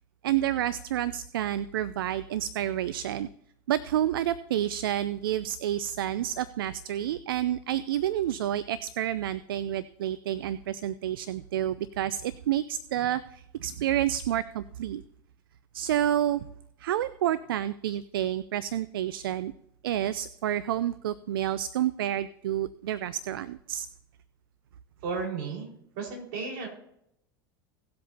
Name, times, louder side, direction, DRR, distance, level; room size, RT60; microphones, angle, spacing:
voice 1, 0.2-3.3 3.7-15.0 15.7-16.5 16.8-19.5 19.8-23.9, right 11 dB, 75° right, 16 dB, 0.4 m, -29 dB
voice 2, 25.0-26.7, right 4 dB, 60° right, -1 dB, 4.5 m, -34 dB
18.0 x 7.8 x 2.7 m, 0.77 s
hypercardioid pair, 85°, 12 cm